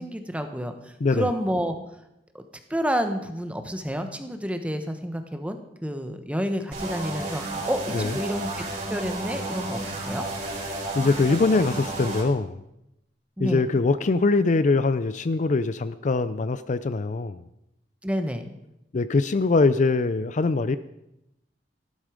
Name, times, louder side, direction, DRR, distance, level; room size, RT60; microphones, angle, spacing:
voice 1, 0.0-1.8 2.3-2.4 2.7-8.5 8.9-10.2 13.4-13.7 18.0-18.5, equal, 5° right, 7 dB, 1.1 m, -29 dB
voice 2, 1.0-1.3 7.9-8.2 10.9-12.6 13.4-17.4 18.9-20.8, left 3 dB, 45° left, 13 dB, 0.5 m, -22 dB
sound 1, 6.7-12.2, right 2 dB, 45° right, 4.7 m, -32 dB
14.5 x 12.5 x 5.1 m, 0.85 s
head